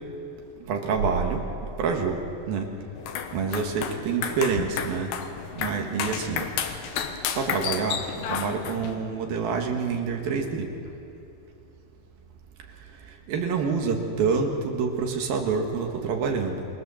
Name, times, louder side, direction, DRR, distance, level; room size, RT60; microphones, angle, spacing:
voice 1, 0.7-1.4 1.8-2.7 3.3-5.1 5.6-6.5 7.4-10.7 13.3-16.7, right 5 dB, 60° right, 2 dB, 3.1 m, -27 dB
sound 1, 3.0-9.0, left 8 dB, 75° left, 3.3 m, -32 dB
28.0 x 21.5 x 7.1 m, 2.9 s
omnidirectional pair, 5.2 m